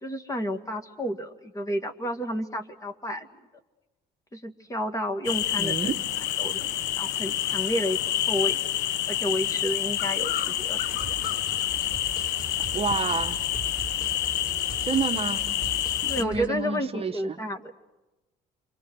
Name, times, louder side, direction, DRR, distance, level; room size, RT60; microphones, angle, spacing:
voice 1, 0.0-3.3 4.3-5.9 6.4-8.6 9.1-11.0 16.1-17.7, equal, 20° left, 6 dB, 2.1 m, -31 dB
sound 1, 5.2-16.2, left 12 dB, 90° left, 0.8 m, -28 dB
voice 2, 5.6-6.0 12.7-13.4 14.8-15.6 16.0-17.4, right 5 dB, 35° right, 5 dB, 1.1 m, -29 dB
sound 2, 10.9-16.5, right 4 dB, 5° right, 3.4 m, -41 dB
28.5 x 24.5 x 6.3 m, 1.1 s
cardioid pair, 110°, 17 cm